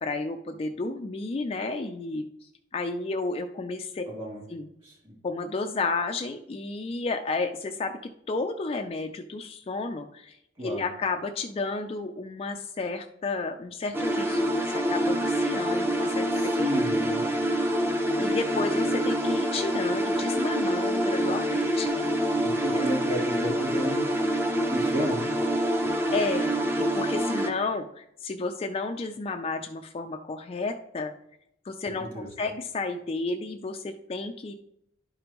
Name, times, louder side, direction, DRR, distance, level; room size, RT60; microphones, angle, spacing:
voice 1, 0.0-4.0 4.5-4.7 5.2-8.0 8.3-16.7 18.2-22.1 22.7-22.8 23.4-23.5 26.1-31.1 31.6-34.5, left 3 dB, 30° left, 6 dB, 0.3 m, -32 dB
voice 2, 4.1-4.4 4.8-5.1 10.6-10.8 16.3-17.2 22.4-24.1 24.7-25.3 31.8-32.3, equal, 30° right, -3 dB, 2.9 m, -32 dB
sound 1, 13.9-27.5, equal, 10° right, 0.7 m, -26 dB
11.0 x 5.1 x 3.0 m, 0.79 s
head